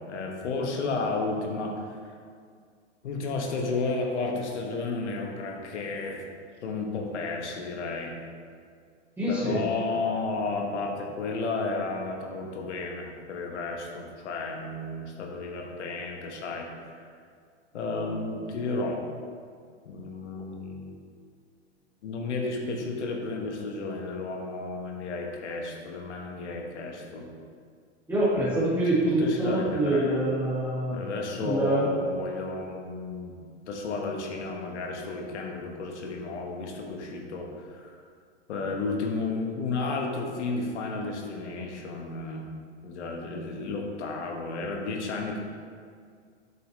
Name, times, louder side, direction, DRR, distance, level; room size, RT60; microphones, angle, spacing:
voice 1, 0.0-2.0 3.0-6.2 6.6-8.2 9.3-17.1 17.7-19.0 19.8-21.0 22.0-27.3 29.0-30.2 30.9-33.4 33.7-38.0 38.5-42.4 42.8-45.4, left 3 dB, 80° left, 1 dB, 1.3 m, -32 dB
voice 2, 9.2-9.6 28.1-31.0 31.4-31.9, right 1 dB, 5° right, -11 dB, 1.8 m, -25 dB
7.8 x 5.8 x 3.2 m, 2.1 s
hypercardioid pair, 120°, 35 cm